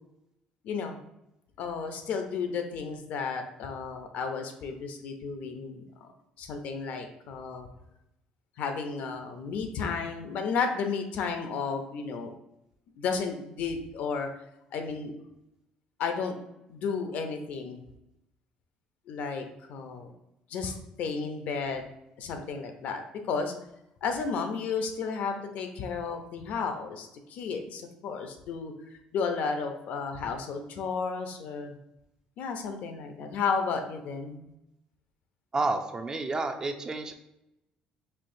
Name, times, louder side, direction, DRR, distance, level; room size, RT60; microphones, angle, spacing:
voice 1, 0.6-1.0 1.6-6.1 6.4-7.7 8.6-12.3 13.0-14.3 14.7-15.1 16.0-16.3 16.7-17.8 19.1-20.1 20.5-21.8 22.2-23.0 23.3-23.5 24.0-31.7 32.4-34.4, left 5 dB, 65° left, 6 dB, 0.6 m, -33 dB
voice 2, 35.5-37.1, right 3 dB, 25° right, 6 dB, 0.4 m, -30 dB
4.4 x 2.7 x 2.6 m, 0.84 s
cardioid pair, 105°, 3 cm